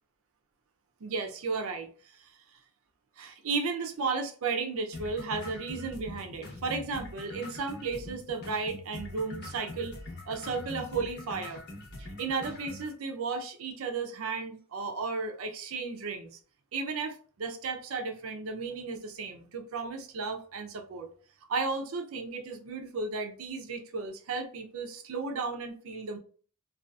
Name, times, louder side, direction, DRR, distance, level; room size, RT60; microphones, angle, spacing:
voice 1, 1.0-2.3 3.2-10.0 10.3-11.6 12.0-16.3 16.7-21.1 21.5-26.2, right 4 dB, 70° right, 0.5 m, -34 dB
sound 1, 4.9-12.9, left 2 dB, 50° left, 0.7 m, -43 dB
2.5 x 2.3 x 2.3 m
head